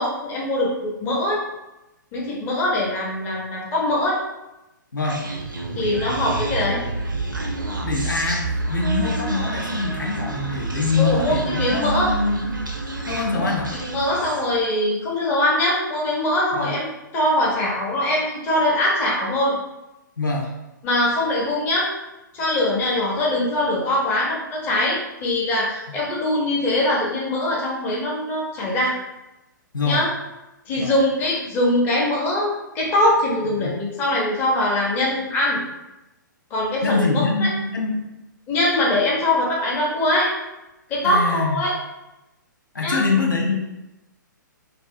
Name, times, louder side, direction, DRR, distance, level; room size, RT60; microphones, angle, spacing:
voice 1, 0.0-1.4 2.1-4.2 5.8-6.8 11.0-12.1 13.4-19.5 20.8-21.9 22.3-29.0 29.8-30.1 30.7-35.6 36.5-37.1 37.4-37.5 38.5-40.3 40.9-41.7 42.8-43.0, left 1 dB, 20° left, -4 dB, 0.6 m, -22 dB
voice 2, 4.9-5.2 7.8-12.6 13.1-13.7 16.5-16.7 20.2-20.5 29.7-30.0 30.8-31.0 33.6-33.8 36.8-38.0 41.0-41.6 42.7-43.5, left 3 dB, 75° left, 0 dB, 0.5 m, -24 dB
Human voice, 5.0-14.5, right 3 dB, 80° right, 0.4 m, -28 dB
2.5 x 2.4 x 2.4 m, 0.97 s
figure-of-eight pair, 120°, 11 cm